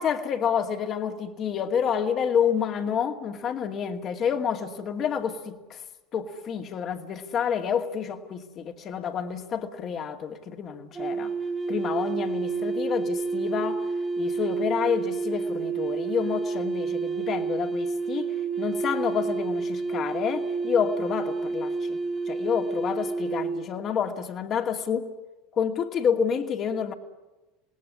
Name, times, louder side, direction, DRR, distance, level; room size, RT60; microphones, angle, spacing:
voice 1, 0.0-5.8 6.1-11.3 11.7-13.8 14.2-22.0 22.3-25.1 25.5-26.9, left 7 dB, 40° left, 2.4 m, -29 dB
sound 1, 10.9-23.7, right 4 dB, 20° right, 1.9 m, -29 dB
27.0 x 19.0 x 9.8 m
hypercardioid pair, 75°, 0 cm